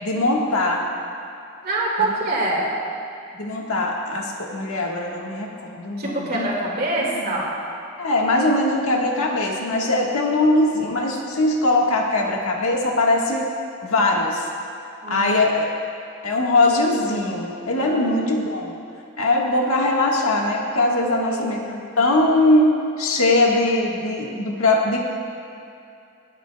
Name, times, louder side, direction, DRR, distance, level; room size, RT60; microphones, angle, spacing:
voice 1, 0.0-0.8 2.0-2.1 3.3-6.5 8.0-13.5 13.8-14.5 15.1-15.7 16.2-18.7 19.2-25.0, left 2 dB, 90° left, -1 dB, 1.5 m, -21 dB
voice 2, 1.6-2.7 6.0-7.6 15.0-15.5 17.8-18.2 21.3-21.8, right 2 dB, 45° right, -4 dB, 2.1 m, -25 dB
26.5 x 9.0 x 2.3 m, 2.6 s
head